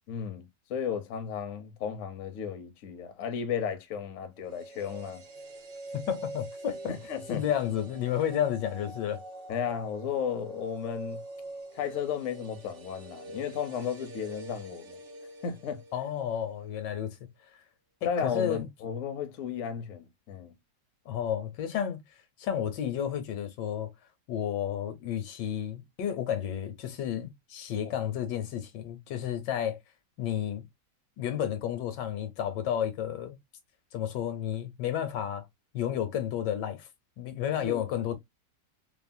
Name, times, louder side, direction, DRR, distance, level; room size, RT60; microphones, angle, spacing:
voice 1, 0.1-5.2 6.9-7.5 9.5-11.2 11.7-15.0 15.4-15.8 18.0-20.5 27.8-27.9 37.5-37.8, left 7 dB, 65° left, 0.8 m, -34 dB
sound 1, 4.4-16.5 16.8-16.9, right 2 dB, 65° right, 1.2 m, -45 dB
voice 2, 5.9-6.9 7.3-9.2 15.9-17.2 18.2-18.7 21.1-22.0 22.4-23.9 24.3-29.8 30.2-30.6 31.2-33.4 33.9-35.4 35.7-36.9 37.2-38.2, left 9 dB, 80° left, 1.3 m, -31 dB
3.1 x 2.0 x 2.5 m
omnidirectional pair, 1.9 m